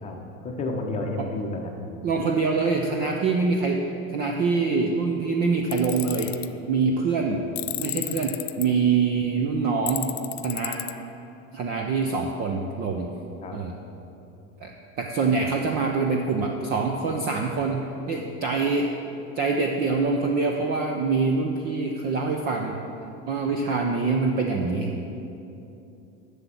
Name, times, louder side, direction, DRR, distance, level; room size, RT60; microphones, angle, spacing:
voice 1, 0.0-1.8 13.4-13.6, left 2 dB, 15° left, 1 dB, 0.8 m, -31 dB
voice 2, 2.0-3.8 4.1-6.3 6.7-7.4 7.8-10.1 10.4-10.8 11.5-13.1 13.5-13.7 14.6-14.7 15.0-18.9 19.4-22.8 23.3-25.0, right 4 dB, 25° right, 2 dB, 0.4 m, -25 dB
Tools, 5.7-6.5 7.6-8.7 9.9-10.9, left 18 dB, 65° left, 0.5 m, -32 dB
7.7 x 7.0 x 7.5 m, 2.9 s
supercardioid pair, 160°, 40 cm